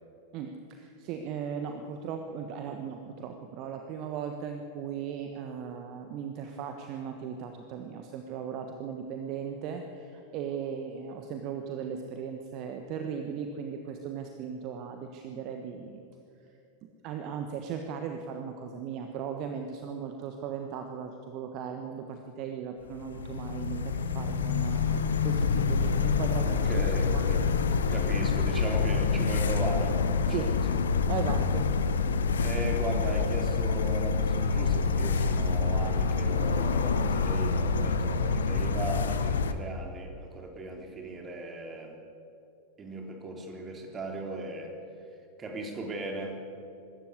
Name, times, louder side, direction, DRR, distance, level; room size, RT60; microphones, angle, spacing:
voice 1, 0.3-16.1 17.0-27.2 30.3-30.5 31.1-31.7, right 7 dB, 40° right, 5 dB, 1.4 m, -37 dB
sound 1, 22.9-39.5, left 4 dB, 65° left, 1.1 m, -27 dB
voice 2, 26.4-27.5 27.9-30.8 32.4-42.0 42.8-44.7 45.4-46.4, right 1 dB, 20° right, 3 dB, 3.4 m, -37 dB
23.5 x 13.0 x 8.3 m, 2.7 s
figure-of-eight pair, 90°, 0 cm